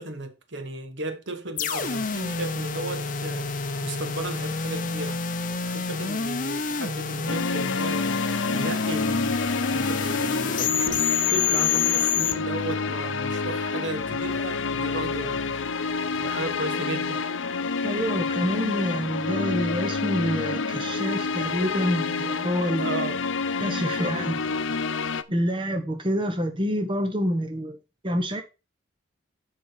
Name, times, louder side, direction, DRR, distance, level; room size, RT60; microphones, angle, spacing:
voice 1, 0.0-5.2 5.7-8.2 8.5-9.4 9.7-17.2 22.8-23.2 23.7-24.2, right 2 dB, 70° right, 1.2 m, -35 dB
sound 1, 1.6-12.3, left 6 dB, 40° left, 0.7 m, -28 dB
sound 2, 7.3-25.2, left 4 dB, 80° left, 0.6 m, -28 dB
voice 2, 17.8-23.0 23.6-24.4 25.3-27.8 28.0-28.4, equal, 25° right, 1.0 m, -27 dB
6.9 x 5.8 x 4.9 m
head